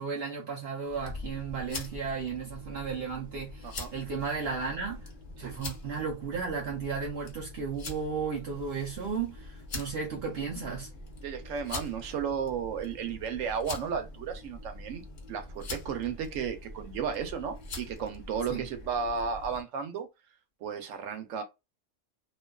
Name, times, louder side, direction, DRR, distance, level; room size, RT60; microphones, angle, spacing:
voice 1, 0.0-5.0 5.4-10.9 18.5-18.6, right 5 dB, 60° right, 0.8 m, -34 dB
sound 1, 0.8-19.6, left 2 dB, 45° left, 0.7 m, -43 dB
voice 2, 11.2-20.1 20.6-21.4, right 6 dB, 85° right, 1.0 m, -34 dB
2.5 x 2.3 x 2.2 m
omnidirectional pair, 1.3 m